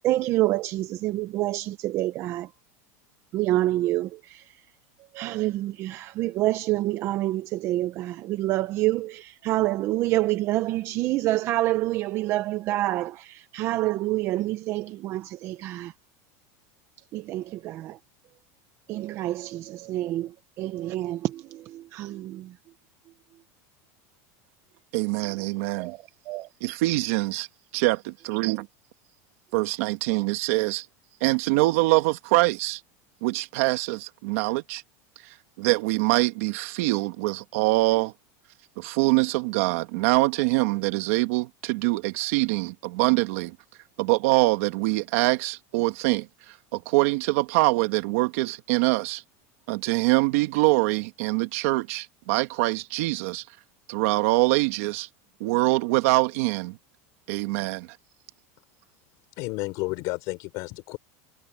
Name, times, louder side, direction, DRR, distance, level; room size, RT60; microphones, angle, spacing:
voice 1, 0.0-2.5 3.3-4.5 5.1-15.9 17.1-18.0 18.9-22.5 25.8-26.0 26.3-26.5, right 16 dB, 35° right, 0.6 m, -27 dB
voice 2, 24.9-25.9 26.6-27.5 27.7-28.7 29.5-30.9 31.2-32.8 33.2-34.8 35.2-38.1 38.8-43.6 44.0-49.2 49.7-53.4 53.9-55.1 55.4-56.8 57.3-57.9, right 22 dB, 60° right, 2.0 m, -24 dB
voice 3, 59.4-61.0, left 23 dB, 45° left, 3.6 m, -31 dB
supercardioid pair, 175°, 8 cm